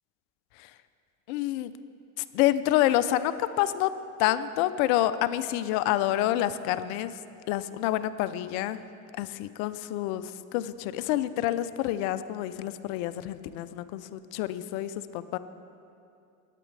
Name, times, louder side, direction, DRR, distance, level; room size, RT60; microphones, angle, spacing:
voice 1, 1.3-1.7 2.3-3.9 4.2-7.1 7.5-8.8 9.2-15.4, left 13 dB, 70° left, 14 dB, 0.6 m, -28 dB
19.0 x 9.2 x 3.3 m, 2.6 s
supercardioid pair, 85°, 42 cm